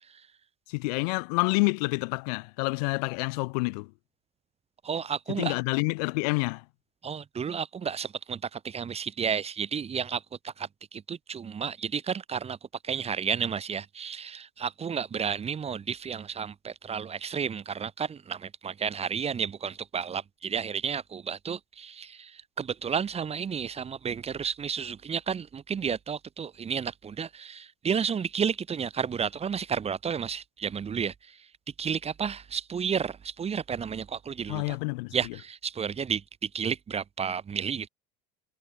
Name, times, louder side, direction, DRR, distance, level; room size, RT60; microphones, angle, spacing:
voice 1, 0.7-3.9 5.3-6.7 34.5-35.4, left 29 dB, 80° left, 2.4 m, -28 dB
voice 2, 4.8-5.5 7.0-12.6 12.8-31.4 31.8-34.8 35.1-37.9, right 7 dB, 30° right, 7.8 m, -32 dB
supercardioid pair, 105°, 20 cm